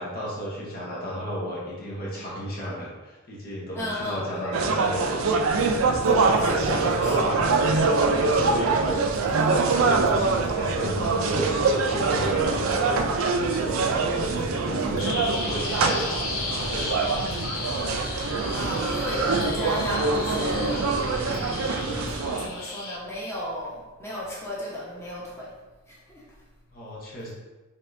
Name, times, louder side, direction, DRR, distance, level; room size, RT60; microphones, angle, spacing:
voice 1, 0.0-5.4 6.2-7.5 8.0-9.0 9.3-16.0 16.3-17.3 26.7-27.3, right 1 dB, 45° left, -5 dB, 0.9 m, -34 dB
voice 2, 3.7-4.5 6.4-7.4 18.1-20.8 21.3-25.5 25.9-26.2, left 1 dB, 15° left, -7 dB, 1.0 m, -35 dB
sound 1, 4.5-22.5, right 4 dB, 80° right, 0.4 m, -24 dB
sound 2, 5.4-22.1, equal, 65° left, 1.3 m, -38 dB
Bird vocalization bird call bird song, 15.0-23.0, left 4 dB, 90° left, 0.6 m, -35 dB
4.2 x 3.4 x 2.6 m, 1.2 s
head